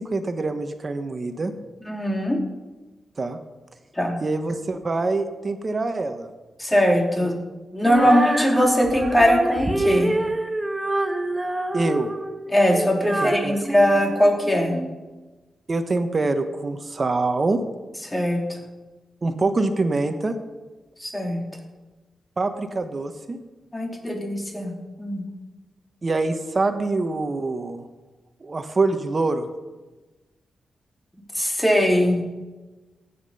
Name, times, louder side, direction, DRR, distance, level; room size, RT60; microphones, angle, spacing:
voice 1, 0.0-1.5 3.2-3.4 4.2-6.3 8.0-8.1 11.7-12.1 13.2-13.6 15.7-17.6 19.2-20.3 22.4-23.4 26.0-27.9 28.4-29.5, right 3 dB, 35° right, 8 dB, 1.2 m, -25 dB
voice 2, 1.8-2.4 4.0-4.2 6.6-7.3 7.7-10.1 12.5-14.8 18.0-18.6 21.0-21.4 23.7-24.7 25.0-25.2 31.3-32.2, equal, 10° left, 2 dB, 2.8 m, -20 dB
Female singing, 7.8-14.9, right 1 dB, 15° right, 1.2 m, -26 dB
15.0 x 9.7 x 5.6 m, 1.2 s
cardioid pair, 90°, 0 cm